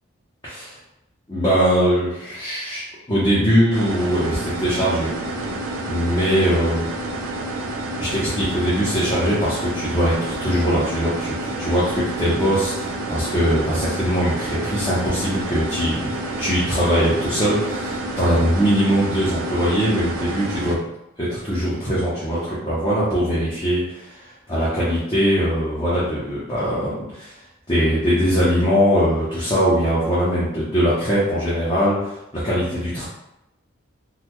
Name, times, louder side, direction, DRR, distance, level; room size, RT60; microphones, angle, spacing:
voice 1, 0.4-0.8 1.3-5.5 5.9-6.9 8.0-16.1 16.4-20.8 21.2-24.2 24.5-27.3 27.7-33.1, equal, 20° left, -9 dB, 0.8 m, -21 dB
sound 1, 3.7-20.8, right 2 dB, 90° right, 0.5 m, -29 dB
3.9 x 2.1 x 3.0 m, 0.87 s
head